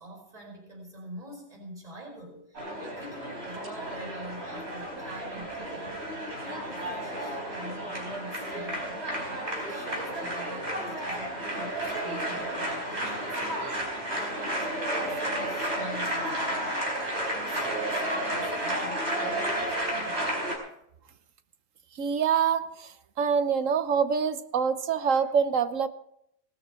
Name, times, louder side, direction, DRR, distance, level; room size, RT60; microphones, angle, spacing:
voice 1, 0.0-9.0 9.4-13.4 14.0-16.6 17.0-20.6, right 1 dB, 30° right, -2 dB, 5.1 m, -45 dB
sound 1, 2.5-20.6, right 1 dB, 60° right, 4.8 m, -32 dB
voice 2, 13.6-13.9 22.0-25.9, right 6 dB, 85° right, 11 dB, 1.3 m, -26 dB
18.0 x 13.0 x 4.5 m, 0.74 s
omnidirectional pair, 1.3 m